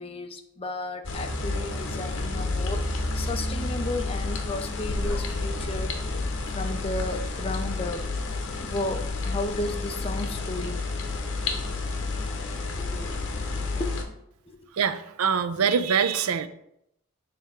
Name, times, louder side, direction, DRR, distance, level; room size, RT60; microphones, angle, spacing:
voice 1, 0.0-6.0 6.5-8.1 8.6-10.8 12.8-14.0 14.5-14.7, left 2 dB, 25° left, 6 dB, 0.5 m, -34 dB
sound 1, 1.0-14.0, left 3 dB, 55° left, 0.8 m, -30 dB
voice 2, 14.8-16.5, right 7 dB, 90° right, 12 dB, 0.5 m, -24 dB
7.4 x 3.4 x 4.4 m, 0.78 s
head